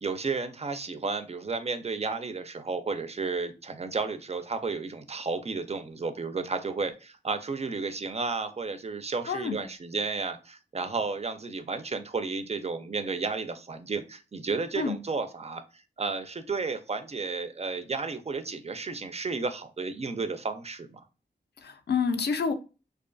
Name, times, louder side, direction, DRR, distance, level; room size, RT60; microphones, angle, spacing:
voice 1, 0.0-21.0, right 4 dB, 35° right, 9 dB, 0.3 m, -32 dB
voice 2, 9.3-9.6 14.8-15.0 21.6-22.5, left 5 dB, 65° left, 7 dB, 0.4 m, -28 dB
2.4 x 2.3 x 2.4 m, 0.32 s
cardioid pair, 45°, 18 cm